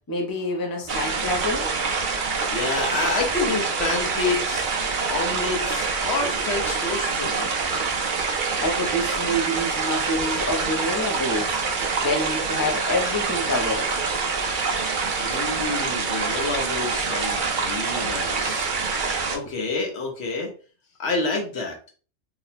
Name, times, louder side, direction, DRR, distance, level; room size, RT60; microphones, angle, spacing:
voice 1, 0.1-1.7 8.6-11.6 12.0-13.9, left 1 dB, 20° left, 0.6 m, -27 dB
sound 1, 0.9-19.4, right 4 dB, 55° right, 0.6 m, -26 dB
voice 2, 2.0-8.1 15.1-18.7 19.3-20.5 21.0-21.9, left 3 dB, 60° left, 1.0 m, -29 dB
2.8 x 2.2 x 4.1 m
omnidirectional pair, 1.3 m